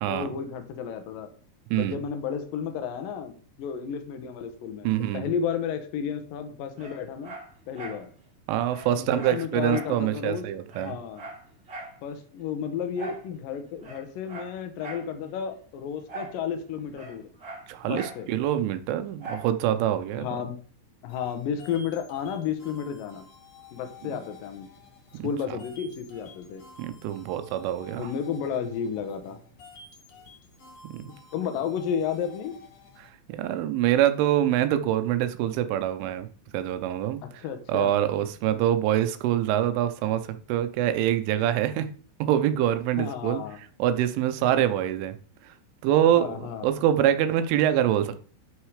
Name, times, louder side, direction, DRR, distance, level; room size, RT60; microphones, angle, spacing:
voice 1, 0.1-1.3 1.7-7.3 7.7-8.1 8.9-10.5 10.8-11.3 12.0-17.3 17.8-18.3 20.2-20.6 21.0-23.3 23.7-24.7 25.2-26.6 28.0-29.4 31.3-32.6 37.2-37.9 43.0-43.6 44.4-44.6 46.1-46.7, left 7 dB, 85° left, 7 dB, 1.9 m, -32 dB
voice 2, 4.8-5.3 8.5-11.0 17.7-20.3 25.2-25.3 26.8-28.1 30.9-31.0 33.0-36.3 36.5-37.2 37.7-41.9 42.2-43.4 43.8-45.2 45.8-48.3, right 11 dB, 80° right, 10 dB, 3.2 m, -25 dB
Dog, 6.8-8.0 8.4-8.5 8.7-10.0 10.3-10.4 10.7-12.0 12.9-13.3 13.8-15.1 16.1-16.4 16.7-18.2 19.2-19.5 20.0-20.1, right 2 dB, 40° right, 1.6 m, -41 dB
sound 1, 21.1-33.1, left 5 dB, 50° left, 2.2 m, -51 dB
9.1 x 6.5 x 4.9 m, 0.43 s
omnidirectional pair, 5.6 m